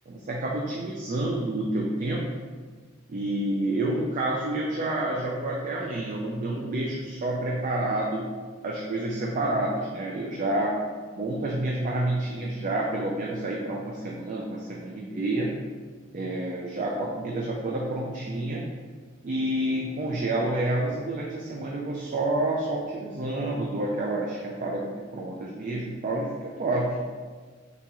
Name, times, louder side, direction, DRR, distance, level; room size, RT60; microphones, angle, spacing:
voice 1, 0.1-2.3 3.1-8.3 8.6-10.9 11.2-15.5 16.1-18.7 19.2-27.0, right 1 dB, 40° right, -2 dB, 0.3 m, -29 dB
3.9 x 2.9 x 2.3 m, 1.5 s
head